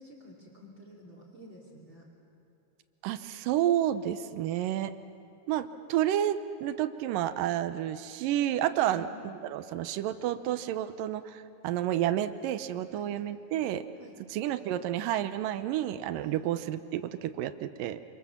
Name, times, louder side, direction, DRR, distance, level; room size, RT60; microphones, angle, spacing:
voice 1, 0.0-2.0 8.8-9.2 12.9-13.2 14.0-14.2 16.2-16.4, equal, 35° right, 0 dB, 3.1 m, -50 dB
voice 2, 3.0-4.9 5.5-13.8 14.3-18.0, right 12 dB, 75° right, 11 dB, 2.1 m, -30 dB
27.5 x 27.0 x 7.3 m, 2.8 s
omnidirectional pair, 4.6 m